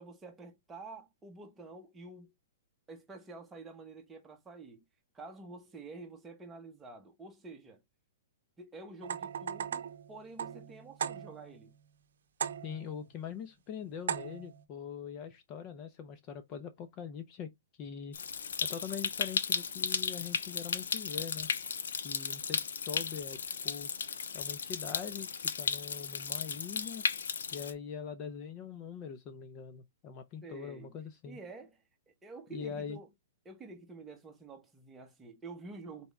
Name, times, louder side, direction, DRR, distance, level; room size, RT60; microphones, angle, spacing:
voice 1, 0.0-2.3 2.9-4.8 5.1-7.8 8.6-11.7 30.4-31.0 31.3-33.1 33.4-36.1, right 3 dB, 10° right, 1.0 m, -49 dB
sound 1, 9.0-11.6 12.4-13.0 14.1-14.6, right 8 dB, 75° right, 0.7 m, -38 dB
voice 2, 12.6-17.5 17.8-18.2 18.6-21.5 22.0-23.9 24.3-27.1 27.5-31.4 32.5-33.0, left 7 dB, 30° left, 0.5 m, -43 dB
Stream, 18.1-27.7, left 6 dB, 85° left, 0.6 m, -35 dB
4.1 x 3.4 x 3.4 m
hypercardioid pair, 155°, 0 cm